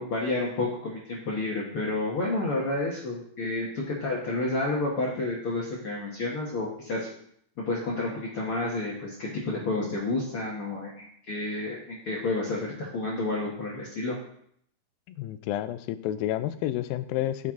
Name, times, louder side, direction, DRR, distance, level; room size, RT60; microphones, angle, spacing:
voice 1, 0.0-7.1 7.6-14.2, left 2 dB, 55° left, -4 dB, 1.7 m, -30 dB
voice 2, 15.1-17.5, left 13 dB, 90° left, 12 dB, 2.4 m, -30 dB
9.5 x 7.7 x 3.7 m, 0.68 s
omnidirectional pair, 4.1 m